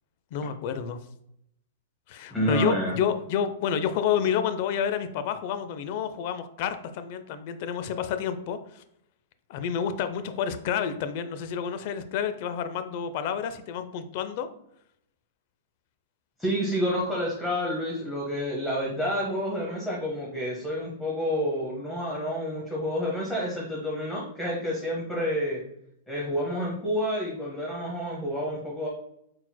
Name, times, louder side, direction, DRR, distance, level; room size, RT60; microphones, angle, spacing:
voice 1, 0.3-1.0 2.1-8.8 9.5-14.5, left 8 dB, 50° left, 11 dB, 0.4 m, -29 dB
voice 2, 2.3-3.0 16.4-25.6 26.1-28.9, equal, 5° left, -4 dB, 0.8 m, -29 dB
4.1 x 4.1 x 2.2 m, 0.75 s
hypercardioid pair, 145°, 0 cm